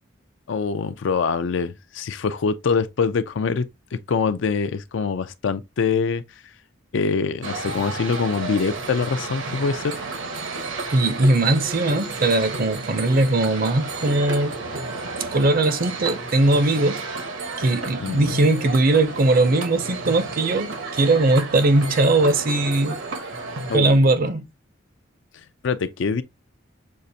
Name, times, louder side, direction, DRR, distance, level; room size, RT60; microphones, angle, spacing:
voice 1, 0.5-3.7 3.9-6.2 6.9-10.0 18.0-18.4 23.7-24.1 25.6-26.2, left 5 dB, 65° left, 0.4 m, -24 dB
sound 1, 7.4-23.8, right 3 dB, 75° right, 1.0 m, -32 dB
voice 2, 10.9-14.6 15.3-17.0 17.6-23.0 23.7-24.4, right 2 dB, 45° right, 0.6 m, -19 dB
6.4 x 2.4 x 2.7 m
head